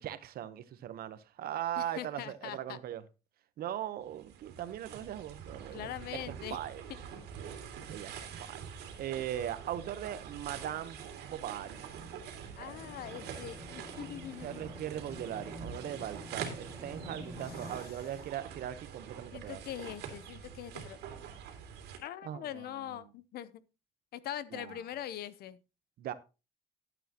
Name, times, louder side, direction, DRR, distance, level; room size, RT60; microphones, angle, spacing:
voice 1, 0.0-3.0 3.6-5.9 6.3-6.8 7.9-8.1 8.5-8.6 9.0-11.8 14.4-19.6 22.2-22.6 24.5-24.8 26.0-26.1, right 11 dB, 65° right, 1.0 m, -39 dB
voice 2, 1.8-2.8 5.7-6.6 12.5-14.7 17.4-17.9 19.3-21.0 22.0-23.6 24.1-25.6, left 11 dB, 70° left, 0.8 m, -42 dB
sound 1, 4.0-22.0, right 7 dB, 80° right, 2.5 m, -45 dB
sound 2, 12.7-17.8, equal, 20° right, 2.0 m, -48 dB
12.5 x 8.2 x 2.9 m
cardioid pair, 110°, 17 cm